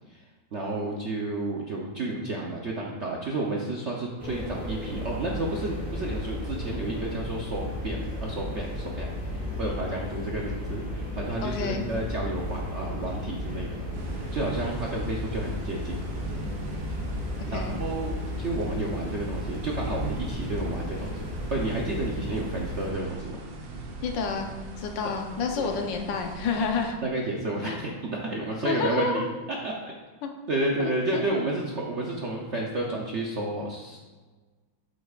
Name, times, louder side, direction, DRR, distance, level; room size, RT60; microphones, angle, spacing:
voice 1, 0.5-9.1 9.5-13.8 14.1-16.0 17.5-23.4 25.0-25.1 25.6-25.7 27.0-29.3 29.6-29.9 30.5-34.0, right 2 dB, 55° right, -2 dB, 0.8 m, -31 dB
sound 1, 4.2-22.9, left 1 dB, 25° right, 2.0 m, -34 dB
voice 2, 11.4-11.8 17.4-17.8 24.0-24.5 24.8-27.0 27.6-27.8 28.6-29.3 30.2-30.3 30.8-31.2, left 5 dB, 70° left, 3 dB, 1.4 m, -29 dB
sound 2, 13.9-26.9, right 2 dB, 75° right, 1.6 m, -40 dB
8.5 x 7.8 x 2.4 m, 1.3 s
omnidirectional pair, 2.1 m